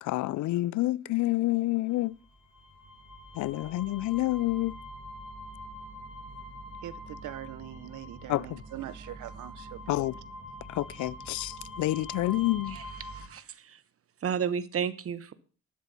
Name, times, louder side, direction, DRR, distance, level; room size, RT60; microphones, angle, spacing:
voice 1, 0.0-2.1 3.4-4.7 8.3-8.6 9.9-10.1 10.7-12.8, left 17 dB, 75° left, 0.5 m, -28 dB
sound 1, 2.2-13.3, equal, 5° right, 4.4 m, -44 dB
voice 2, 6.8-10.0, right 14 dB, 80° right, 0.8 m, -42 dB
voice 3, 12.7-13.8 14.2-15.3, right 7 dB, 50° right, 1.1 m, -33 dB
11.5 x 7.4 x 6.9 m
cardioid pair, 90°, 30 cm